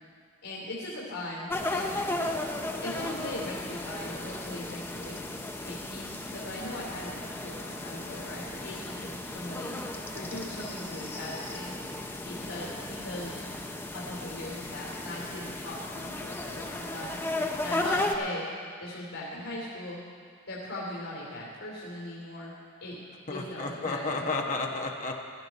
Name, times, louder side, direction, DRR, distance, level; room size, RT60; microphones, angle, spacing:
voice 1, 0.4-2.0 2.8-5.2 5.6-9.8 10.1-11.7 12.3-13.5 13.9-17.2 17.6-18.4 18.8-20.0 20.5-22.5 22.8-22.9 23.3-24.3, left 1 dB, 90° left, -5 dB, 2.9 m, -39 dB
sound 1, 1.5-18.2, left 2 dB, 10° left, 0.7 m, -35 dB
voice 2, 23.3-25.3, left 3 dB, 35° left, 1 dB, 1.2 m, -32 dB
16.0 x 12.5 x 4.1 m, 2.1 s
head